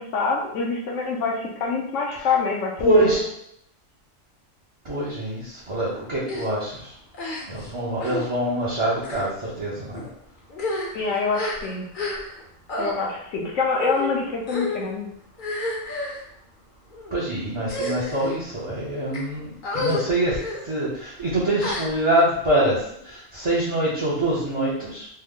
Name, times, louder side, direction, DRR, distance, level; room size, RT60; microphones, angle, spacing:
voice 1, 0.0-3.2 10.9-11.8 12.8-15.1, left 4 dB, 75° left, 0 dB, 1.1 m, -25 dB
voice 2, 2.8-3.3 4.8-6.9 7.5-10.1 17.1-20.4 20.6-25.1, right 1 dB, 30° right, -8 dB, 0.6 m, -24 dB
sound 1, 6.2-6.5 7.1-7.7 8.0-8.3 9.0-9.2 9.9-10.1 10.5-12.4 12.7-12.9 13.7-14.1 14.5-14.8 15.4-16.2 16.9-17.1 17.6-18.3 18.9-19.2 19.6-20.0 20.4-20.6 21.6-22.2, left 2 dB, 50° left, 0.7 m, -30 dB
3.3 x 2.1 x 3.6 m, 0.72 s
omnidirectional pair, 1.3 m